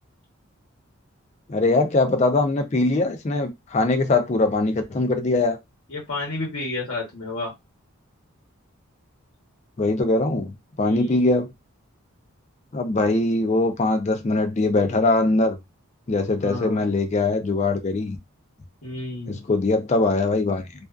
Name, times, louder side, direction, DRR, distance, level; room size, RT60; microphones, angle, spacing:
voice 1, 1.5-5.6 9.8-10.5 10.8-11.5 12.7-15.6 16.1-18.2 19.3-20.7, left 2 dB, 30° left, 0.4 m, -21 dB
voice 2, 5.9-7.5 10.8-11.2 16.4-16.8 18.8-19.4, left 2 dB, 65° left, 1.0 m, -31 dB
2.4 x 2.3 x 2.3 m
head